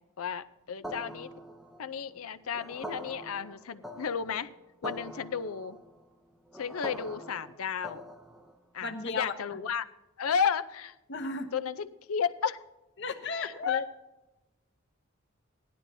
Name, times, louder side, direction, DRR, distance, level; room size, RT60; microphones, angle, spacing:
voice 1, 0.2-1.3 1.8-4.5 4.8-5.8 6.5-8.0 8.7-9.8 10.2-10.9 11.5-12.6 13.4-13.8, left 7 dB, 85° left, 13 dB, 0.5 m, -33 dB
sound 1, 0.8-8.6, right 1 dB, ahead, 0.6 m, -44 dB
voice 2, 8.8-9.3 11.1-11.5 13.0-13.8, left 5 dB, 55° left, 6 dB, 1.0 m, -33 dB
16.5 x 11.5 x 2.7 m, 1.0 s
head